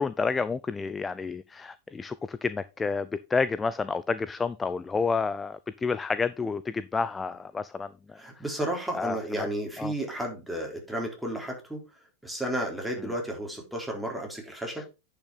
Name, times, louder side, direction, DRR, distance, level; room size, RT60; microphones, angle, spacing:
voice 1, 0.0-8.2 8.9-9.5 9.8-9.9 14.8-14.9, left 4 dB, 15° left, 0.5 m, -30 dB
voice 2, 8.2-11.8 12.2-14.9, right 1 dB, 5° right, 3.8 m, -32 dB
10.0 x 6.0 x 4.0 m
hypercardioid pair, 95°, 0 cm